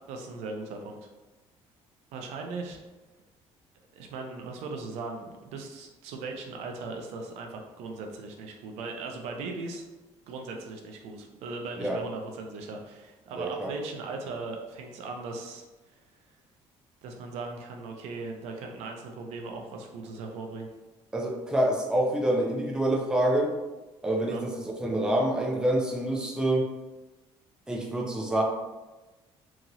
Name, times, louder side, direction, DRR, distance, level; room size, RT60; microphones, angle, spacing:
voice 1, 0.1-1.1 2.1-2.8 3.9-9.9 10.3-15.9 17.0-20.7 24.3-24.4, right 3 dB, 90° right, 3 dB, 0.5 m, -38 dB
voice 2, 13.4-13.7 21.1-23.5 24.0-26.7 27.7-28.4, right 1 dB, 5° right, -1 dB, 0.4 m, -27 dB
2.9 x 2.8 x 2.5 m, 1.1 s
cardioid pair, 150°, 11 cm